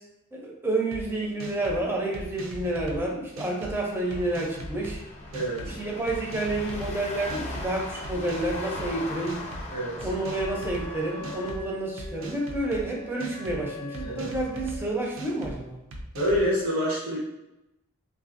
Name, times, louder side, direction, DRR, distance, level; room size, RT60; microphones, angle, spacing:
voice 1, 0.3-5.0 5.6-9.4 10.0-15.8, right 2 dB, 10° right, -2 dB, 0.5 m, -29 dB
sound 1, 0.9-1.0 1.4-1.8 2.1-3.0 3.4-3.7 4.1-4.9 5.3-5.7 6.1-6.9 7.3-7.7 8.0-8.9 9.3-9.7 10.0-10.9 11.2-11.6 12.0-12.8 13.2-13.6 13.9-14.8 15.2-15.5 15.9-16.4, right 1 dB, 65° right, 0.5 m, -39 dB
sound 2, 4.0-11.5, left 2 dB, 30° left, 0.6 m, -39 dB
voice 2, 5.3-5.8 9.7-10.1 14.0-14.3 16.1-17.2, equal, 85° right, -8 dB, 1.3 m, -27 dB
Wind instrument woodwind instrument, 10.3-14.8, left 2 dB, 75° left, 0.4 m, -42 dB
3.5 x 2.5 x 2.5 m, 0.94 s
head